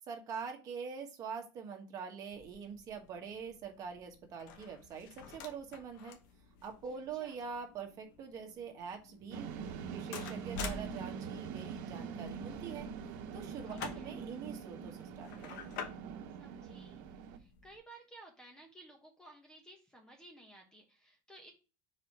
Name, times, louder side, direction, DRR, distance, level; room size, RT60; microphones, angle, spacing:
voice 1, 0.1-6.2 6.6-9.5 9.8-12.9 13.3-15.7, right 6 dB, 35° right, 4 dB, 1.3 m, -44 dB
sound 1, 2.3-17.8, left 6 dB, 75° left, 1.1 m, -50 dB
voice 2, 6.9-7.4 13.7-14.2 16.4-21.5, right 2 dB, 5° left, 2 dB, 0.9 m, -57 dB
sound 2, 9.3-17.4, right 6 dB, 75° right, 1.1 m, -43 dB
4.8 x 4.2 x 4.7 m, 0.32 s
cardioid pair, 165°, 11 cm